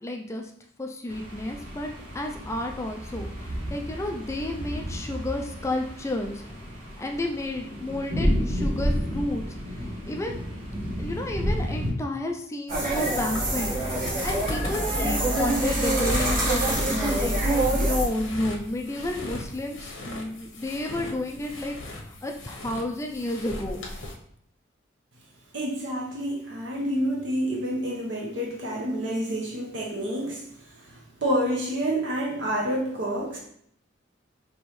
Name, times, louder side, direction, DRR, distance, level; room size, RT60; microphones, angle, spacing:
voice 1, 0.0-0.5 0.8-1.9 2.1-9.4 10.1-10.4 11.0-23.8, left 1 dB, 15° left, 2 dB, 0.4 m, -31 dB
sound 1, 1.1-11.9, equal, 85° right, 1.7 m, -31 dB
sound 2, 12.7-18.1, right 1 dB, 45° right, 1.7 m, -25 dB
sound 3, 13.2-24.1, left 2 dB, 85° left, 1.0 m, -39 dB
voice 2, 25.5-30.5 30.7-33.4, equal, 65° right, -1 dB, 0.9 m, -28 dB
5.2 x 3.0 x 3.1 m, 0.67 s
head